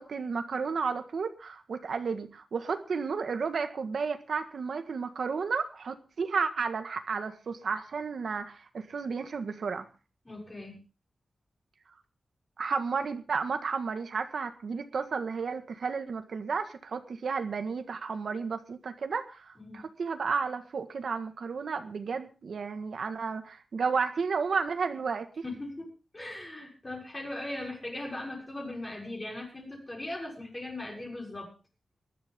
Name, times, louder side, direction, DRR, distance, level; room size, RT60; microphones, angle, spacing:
voice 1, 0.0-9.9 12.6-25.3, right 5 dB, 75° right, 7 dB, 1.7 m, -32 dB
voice 2, 10.2-10.8 19.6-19.8 25.4-31.5, left 1 dB, 25° left, 0 dB, 6.5 m, -39 dB
20.5 x 12.0 x 3.7 m, 0.33 s
wide cardioid pair, 130°, 0 cm